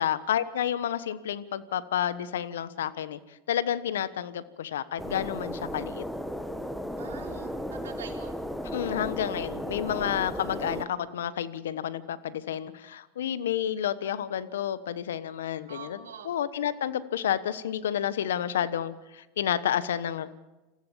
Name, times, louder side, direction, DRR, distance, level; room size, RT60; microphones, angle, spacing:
voice 1, 0.0-3.2 3.5-6.0 8.6-20.3, left 10 dB, 85° left, 15 dB, 1.1 m, -30 dB
sound 1, 5.0-10.9, equal, ahead, 1.4 m, -35 dB
voice 2, 7.0-8.4 15.7-16.3, right 7 dB, 90° right, 0 dB, 4.1 m, -44 dB
28.0 x 15.0 x 7.4 m, 1.1 s
hypercardioid pair, 110°, 0 cm